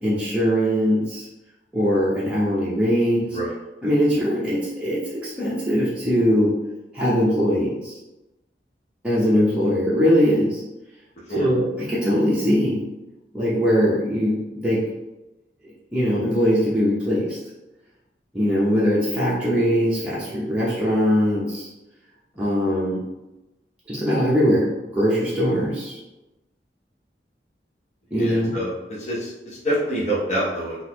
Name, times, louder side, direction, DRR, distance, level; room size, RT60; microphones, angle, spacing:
voice 1, 0.0-1.3 1.7-3.2 3.8-6.5 6.9-8.0 9.0-10.6 11.3-12.8 13.3-14.8 15.9-17.4 18.3-21.7 22.4-23.0 23.9-26.0 28.1-28.6, equal, 5° right, -10 dB, 0.7 m, -21 dB
voice 2, 28.2-28.7 29.0-29.3 29.6-30.8, right 1 dB, 40° left, -5 dB, 0.8 m, -25 dB
3.8 x 2.5 x 2.8 m, 1.0 s
head